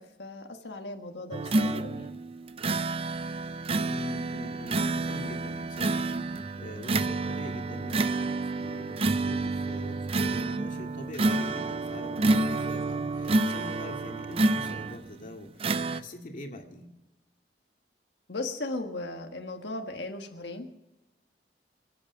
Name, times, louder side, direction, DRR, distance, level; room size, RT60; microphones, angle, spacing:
voice 1, 0.0-2.2 18.3-20.7, left 2 dB, 80° left, 4 dB, 1.5 m, -37 dB
sound 1, 1.3-15.1 15.6-16.0, right 2 dB, 35° right, 0.5 m, -29 dB
voice 2, 3.9-15.5 15.9-16.9, left 1 dB, 50° left, 3 dB, 2.2 m, -43 dB
26.0 x 8.7 x 6.0 m, 0.98 s
head